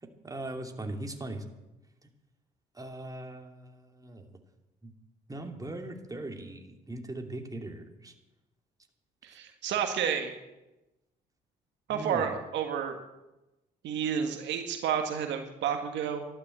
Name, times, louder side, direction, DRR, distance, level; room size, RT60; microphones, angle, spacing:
voice 1, 0.0-1.5 2.0-2.1 2.7-4.4 4.8-4.9 5.3-8.1 11.9-12.3, right 1 dB, 20° right, 3 dB, 2.7 m, -40 dB
voice 2, 9.2-10.3 11.9-13.0 13.8-16.3, right 8 dB, 75° right, 5 dB, 1.6 m, -30 dB
13.0 x 12.0 x 7.7 m, 1.0 s
supercardioid pair, 60°, 19 cm